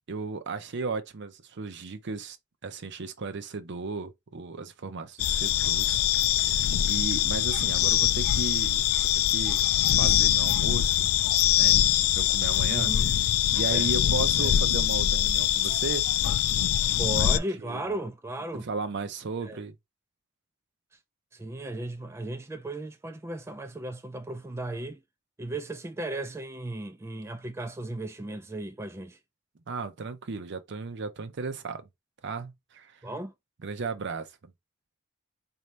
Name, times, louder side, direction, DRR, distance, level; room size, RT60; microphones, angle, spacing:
voice 1, 0.1-2.4 2.6-6.0 6.4-8.8 9.1-11.0 11.6-11.8 12.1-12.9 13.5-16.1 17.2-17.3 17.6-17.8 18.6-19.7 29.7-31.9 32.2-33.0 33.6-34.5, right 4 dB, 55° right, 0.6 m, -35 dB
sound 1, 5.2-17.4, left 12 dB, 85° left, 0.3 m, -23 dB
voice 2, 12.7-13.1 13.7-13.9 14.4-14.6 17.0-18.7 19.4-19.6 21.3-25.0 25.4-29.2 33.0-33.3, right 2 dB, 10° right, 0.3 m, -35 dB
4.4 x 2.7 x 3.2 m
head